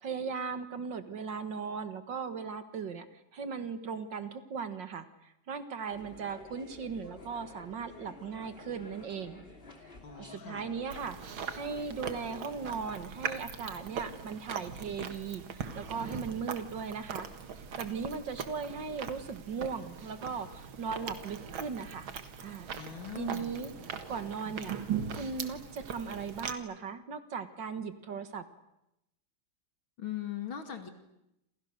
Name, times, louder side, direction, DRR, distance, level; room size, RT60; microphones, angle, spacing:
voice 1, 0.0-9.4 9.8-9.9 10.2-11.2 11.5-17.3 17.6-22.1 22.4-22.7 23.2-23.7 24.1-24.8 25.1-28.5, right 5 dB, 65° right, 10 dB, 2.3 m, -38 dB
sound 1, 5.9-13.0, left 2 dB, 25° left, 3.2 m, -51 dB
voice 2, 10.0-10.7 22.7-23.6 30.0-30.9, left 10 dB, 90° left, 6 dB, 3.2 m, -40 dB
Chewing mastication, 10.9-26.5, right 7 dB, 85° right, 2.5 m, -40 dB
28.5 x 28.0 x 6.7 m, 0.86 s
omnidirectional pair, 2.2 m